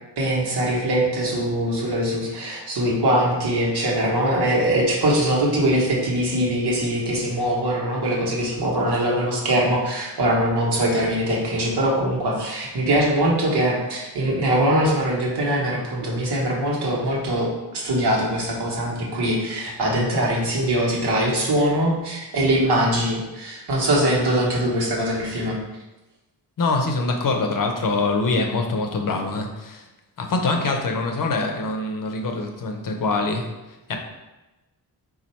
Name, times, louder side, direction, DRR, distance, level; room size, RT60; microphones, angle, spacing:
voice 1, 0.2-25.6, right 1 dB, 85° right, -3 dB, 1.1 m, -22 dB
voice 2, 26.6-29.8 30.2-33.5 33.9-34.0, left 3 dB, 55° left, 3 dB, 0.6 m, -24 dB
4.2 x 2.4 x 4.3 m, 1.1 s
wide cardioid pair, 155°, 39 cm